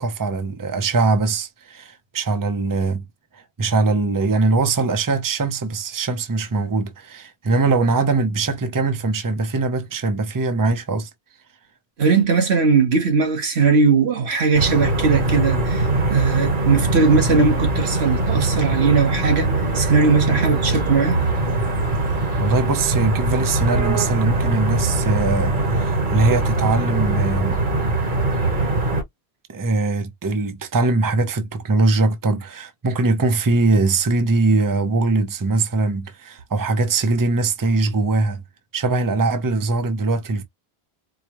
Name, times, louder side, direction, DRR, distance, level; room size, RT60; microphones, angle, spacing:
voice 1, 0.0-3.1 3.3-11.1 22.4-27.6 29.5-38.4 38.7-40.4, right 3 dB, 25° right, 0.6 m, -21 dB
voice 2, 12.0-19.5 19.7-21.2, right 5 dB, 85° right, 1.4 m, -19 dB
sound 1, 14.5-29.0, right 2 dB, 50° right, 1.3 m, -22 dB
4.7 x 2.2 x 3.0 m
omnidirectional pair, 1.1 m